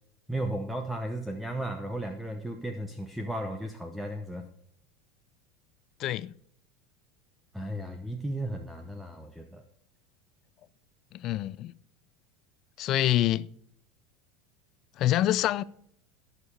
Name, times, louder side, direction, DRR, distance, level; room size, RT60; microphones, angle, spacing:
voice 1, 0.3-4.5 7.5-9.6, right 1 dB, 5° right, 0.8 m, -35 dB
voice 2, 6.0-6.4 11.1-11.8 12.8-13.5 15.0-15.6, left 13 dB, 40° left, 0.4 m, -26 dB
14.0 x 6.6 x 5.1 m
supercardioid pair, 150°, 0 cm